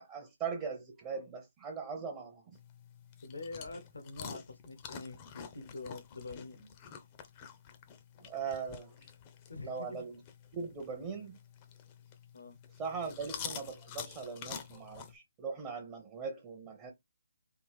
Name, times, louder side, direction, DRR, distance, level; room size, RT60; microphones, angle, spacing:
voice 1, 0.0-2.6 8.2-9.1 9.6-10.2 10.5-11.4 12.8-16.9, right 5 dB, 20° right, 0.7 m, -40 dB
sound 1, 2.5-15.1, left 8 dB, 25° left, 0.5 m, -48 dB
voice 2, 3.2-6.7 9.5-10.0 12.3-12.6, left 3 dB, 80° left, 0.8 m, -45 dB
3.5 x 2.4 x 3.5 m
figure-of-eight pair, 155°, 0 cm